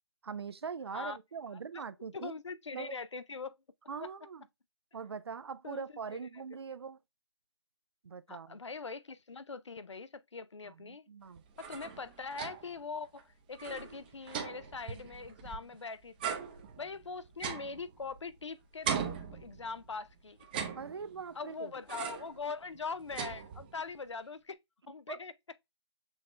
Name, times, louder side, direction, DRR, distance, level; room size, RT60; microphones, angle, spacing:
voice 1, 0.2-2.3 2.7-3.0 3.9-4.4 4.9-7.0 8.0-8.6 10.7-11.4 20.8-21.7 25.1-25.2, right 6 dB, 65° right, 0.5 m, -42 dB
voice 2, 2.1-3.6 4.0-4.1 5.6-6.4 8.3-11.1 11.6-16.4 16.8-20.4 21.3-24.6 24.9-25.3, left 4 dB, 85° left, 0.6 m, -42 dB
sound 1, 11.4-12.8 13.2-13.3 13.5-15.8 16.2-18.4 18.8-19.9 20.4-21.3 21.9-22.4 22.7-23.9, right 7 dB, 20° right, 0.6 m, -40 dB
6.3 x 2.4 x 3.1 m
figure-of-eight pair, 155°, 15 cm